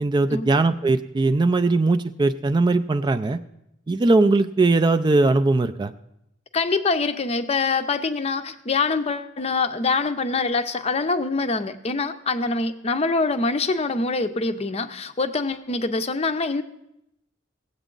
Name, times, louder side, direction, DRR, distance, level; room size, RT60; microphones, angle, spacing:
voice 1, 0.0-3.4 3.9-5.9, right 3 dB, 25° right, 11 dB, 0.3 m, -20 dB
voice 2, 6.5-16.6, left 3 dB, 35° left, 9 dB, 0.6 m, -24 dB
17.5 x 8.0 x 3.8 m, 0.82 s
head